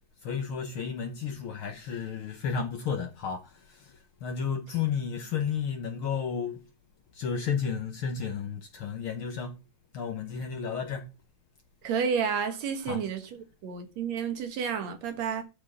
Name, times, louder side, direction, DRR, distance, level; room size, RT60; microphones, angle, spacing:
voice 1, 0.2-6.6 7.1-9.6 9.9-11.1 12.8-13.0, left 6 dB, 65° left, 1.4 m, -32 dB
voice 2, 11.8-13.2 13.6-15.4, right 6 dB, 65° right, 2.5 m, -30 dB
11.0 x 4.5 x 7.4 m
omnidirectional pair, 3.4 m